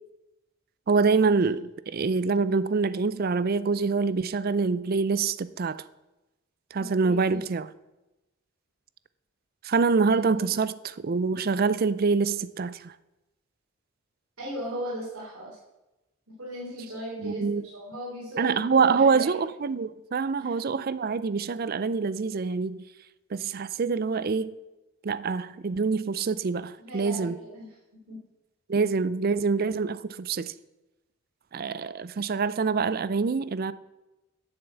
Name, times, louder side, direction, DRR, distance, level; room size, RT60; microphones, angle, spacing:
voice 1, 0.9-5.8 6.7-7.7 9.6-12.9 17.2-17.6 18.4-22.8 23.3-24.5 25.0-27.4 28.7-30.5 31.5-33.7, right 4 dB, 45° right, 0.4 m, -25 dB
voice 2, 6.7-7.4 10.4-10.5 14.4-15.6 16.4-17.4 17.7-18.6 19.0-19.3 20.4-20.6 26.8-27.7 28.1-28.2, right 1 dB, 70° right, 3.8 m, -37 dB
8.9 x 7.1 x 8.1 m
head